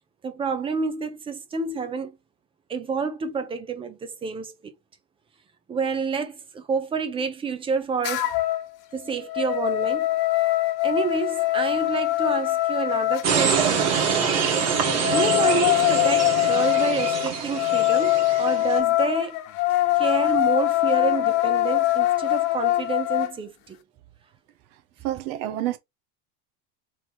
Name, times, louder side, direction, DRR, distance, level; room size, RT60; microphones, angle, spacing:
voice 1, 0.2-2.2 2.7-4.7 5.7-8.3 8.9-10.1 10.8-13.9 14.9-19.4 20.0-23.8, right 5 dB, 15° right, 0.4 m, -29 dB
sound 1, 8.0-8.7 9.1-13.3 14.7-23.3, left 17 dB, 60° left, 1.0 m, -23 dB
sound 2, 13.2-18.8, right 6 dB, 30° right, 1.9 m, -25 dB
voice 2, 25.0-25.8, right 13 dB, 60° right, 1.0 m, -28 dB
3.7 x 2.9 x 4.2 m
supercardioid pair, 135°, 48 cm